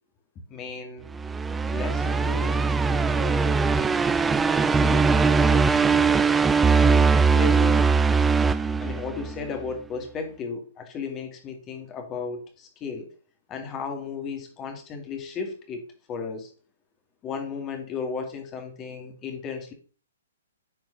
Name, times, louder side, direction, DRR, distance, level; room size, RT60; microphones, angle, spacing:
voice 1, 0.5-1.1 1.7-4.0 4.5-6.2 6.8-7.8 8.8-13.1 13.5-16.5 17.2-19.7, left 5 dB, 25° left, 5 dB, 2.0 m, -35 dB
sound 1, 1.1-9.4, right 4 dB, 10° right, 0.4 m, -21 dB
9.7 x 4.6 x 3.8 m, 0.39 s
figure-of-eight pair, 125°, 0 cm